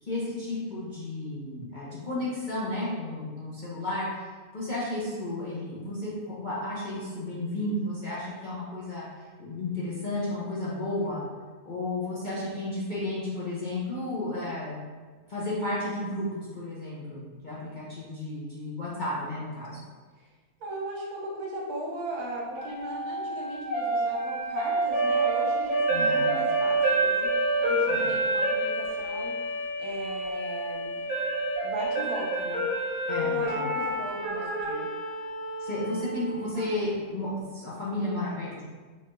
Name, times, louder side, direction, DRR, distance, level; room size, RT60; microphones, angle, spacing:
voice 1, 0.0-4.1 4.5-11.2 11.6-14.8 15.3-19.8 25.9-26.3 27.8-28.1 33.1-33.6 35.6-38.6, left 2 dB, 40° left, -8 dB, 0.7 m, -33 dB
voice 2, 20.6-29.3 29.8-31.0 31.6-32.6 33.2-34.9, right 1 dB, 75° right, -3 dB, 1.3 m, -38 dB
sound 1, 22.6-36.7, right 2 dB, 55° right, 1.7 m, -28 dB
4.4 x 3.7 x 2.6 m, 1.4 s
omnidirectional pair, 1.7 m